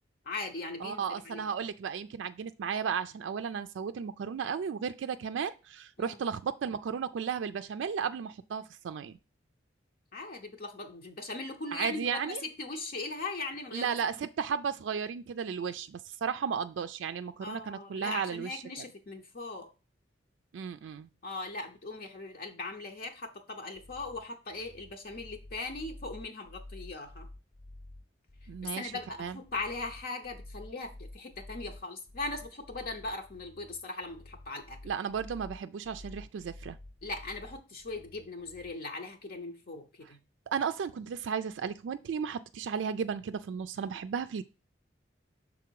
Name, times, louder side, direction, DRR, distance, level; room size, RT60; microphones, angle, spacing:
voice 1, 0.2-1.5 6.0-6.2 10.1-13.9 17.4-19.7 21.2-27.3 28.6-34.8 37.0-40.2, left 3 dB, 55° left, 0.7 m, -39 dB
voice 2, 0.8-9.2 11.7-12.4 13.7-18.6 20.5-21.1 28.5-28.9 29.2-29.4 34.8-36.8 40.5-44.4, right 7 dB, 85° right, 0.3 m, -34 dB
sound 1, 23.7-38.8, left 1 dB, 25° left, 0.3 m, -50 dB
5.9 x 3.8 x 4.6 m
head